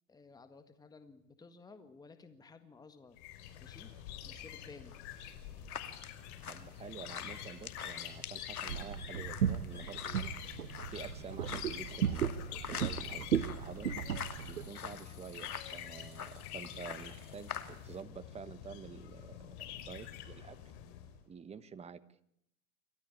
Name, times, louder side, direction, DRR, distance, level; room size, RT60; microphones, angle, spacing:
voice 1, 0.1-3.2 3.6-3.9 4.2-5.0, left 4 dB, 10° left, 9 dB, 1.7 m, -55 dB
sound 1, 3.2-21.2, left 11 dB, 50° left, 4.7 m, -47 dB
sound 2, 4.9-18.0, left 7 dB, 90° left, 2.7 m, -47 dB
voice 2, 6.5-10.4 10.9-14.0 14.4-20.6 21.3-22.2, right 6 dB, 15° right, 15 dB, 1.2 m, -49 dB
sound 3, 8.7-14.7, right 9 dB, 85° right, 1.2 m, -36 dB
29.0 x 14.0 x 8.4 m, 0.75 s
hypercardioid pair, 115°, 43 cm